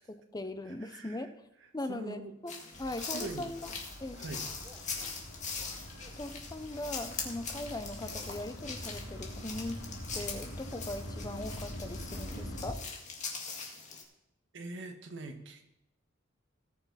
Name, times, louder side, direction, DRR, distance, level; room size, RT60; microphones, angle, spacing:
voice 1, 0.1-1.3 1.7-3.6 4.0-4.2 6.2-9.8 10.1-12.8, left 1 dB, 20° left, 10 dB, 0.7 m, -40 dB
voice 2, 0.7-1.3 1.9-2.3 3.0-3.5 4.1-4.4 14.5-15.7, right 2 dB, 65° right, 4 dB, 1.6 m, -43 dB
sound 1, 2.5-14.0, left 5 dB, 40° left, 2.0 m, -42 dB
Male speech man speaking, 2.6-2.9 3.6-3.9 4.5-5.0 6.0-6.3 7.6-8.4, right 1 dB, 20° right, 1.0 m, -58 dB
sound 2, 2.7-12.7, equal, 80° left, 4.3 m, -44 dB
18.0 x 6.6 x 4.1 m, 0.86 s
head